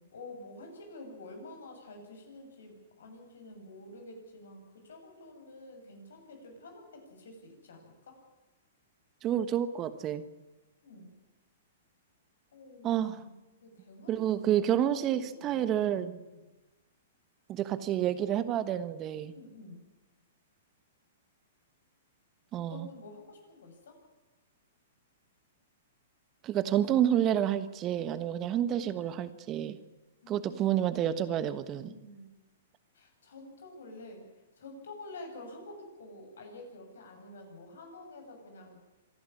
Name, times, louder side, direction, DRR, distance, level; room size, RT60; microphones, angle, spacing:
voice 1, 0.1-8.2 10.8-11.1 12.5-15.6 16.3-16.4 19.3-19.8 22.7-24.0 30.2-32.3 32.9-34.2 34.6-38.8, left 2 dB, 75° left, 3 dB, 7.3 m, -49 dB
voice 2, 9.2-10.2 12.8-13.2 14.1-16.2 17.5-19.3 22.5-22.9 26.4-29.8 30.3-31.9, right 10 dB, 30° right, 13 dB, 1.3 m, -29 dB
25.5 x 11.5 x 9.9 m, 1.1 s
hypercardioid pair, 125°, 0 cm